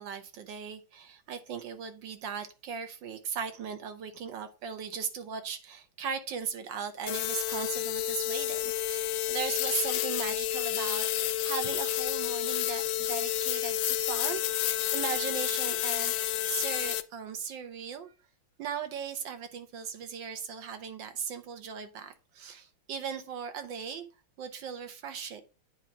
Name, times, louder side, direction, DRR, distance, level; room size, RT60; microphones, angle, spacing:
voice 1, 0.0-16.1 16.5-18.1 18.6-24.0 24.4-25.4, right 7 dB, 65° right, 1.5 m, -38 dB
sound 1, 7.1-17.0, left 12 dB, 75° left, 1.1 m, -30 dB
8.9 x 3.1 x 5.7 m
omnidirectional pair, 2.4 m